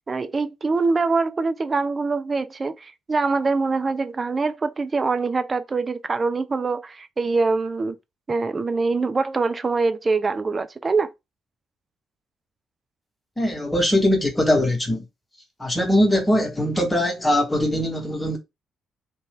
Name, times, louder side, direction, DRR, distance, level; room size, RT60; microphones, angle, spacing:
voice 1, 0.1-8.0 8.3-11.1, right 4 dB, 30° right, 0.4 m, -24 dB
voice 2, 13.4-15.0 15.6-18.4, left 1 dB, 15° left, 1.1 m, -21 dB
2.5 x 2.2 x 3.4 m
figure-of-eight pair, 40°, 0 cm